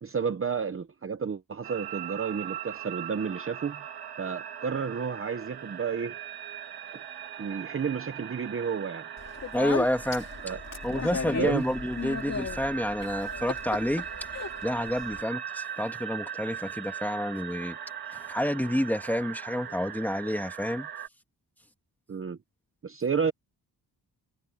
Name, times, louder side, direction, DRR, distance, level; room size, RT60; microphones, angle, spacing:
voice 1, 0.0-3.8 4.2-6.2 7.4-9.1 10.4-10.6 11.4-11.6 22.1-22.4 22.8-23.3, right 6 dB, 35° right, 0.8 m, -31 dB
sound 1, 1.6-21.1, right 9 dB, 70° right, 1.5 m, -40 dB
Speech, 9.2-15.2, left 5 dB, 40° left, 2.8 m, -36 dB
voice 2, 9.5-10.3 10.8-14.1 14.6-17.8 18.1-20.9, equal, 5° left, 2.3 m, -29 dB
wide cardioid pair, 170°, 40 cm